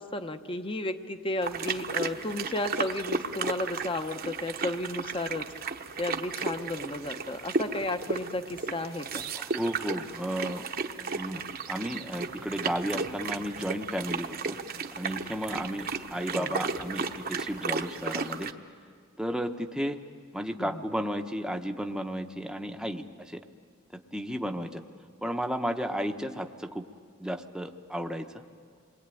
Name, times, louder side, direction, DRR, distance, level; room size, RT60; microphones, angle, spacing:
voice 1, 0.0-5.5 6.0-9.3 16.3-16.6 20.6-20.8, left 2 dB, 25° left, 8 dB, 0.9 m, -33 dB
sound 1, 1.4-18.5, right 4 dB, 45° right, 1.0 m, -34 dB
voice 2, 9.3-10.6 11.1-14.6 14.9-18.5 19.2-20.0 20.3-23.4 23.9-24.8 25.2-26.8 27.2-28.4, equal, 5° right, 5 dB, 0.9 m, -33 dB
28.5 x 22.5 x 9.1 m, 2.1 s
head